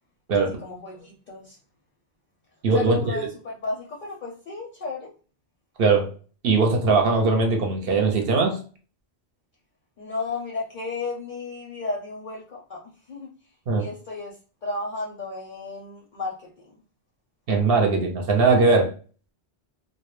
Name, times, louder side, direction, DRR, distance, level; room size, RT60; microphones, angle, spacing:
voice 1, 0.3-1.6 2.7-5.1 10.0-12.8 13.1-13.3 13.8-14.4 14.6-16.8, left 3 dB, 55° left, -3 dB, 0.6 m, -33 dB
voice 2, 2.6-3.2 5.8-6.1 6.4-8.6 13.7-13.9 17.5-18.9, right 3 dB, 65° right, 3 dB, 0.8 m, -20 dB
2.2 x 2.0 x 3.0 m, 0.39 s
omnidirectional pair, 1.1 m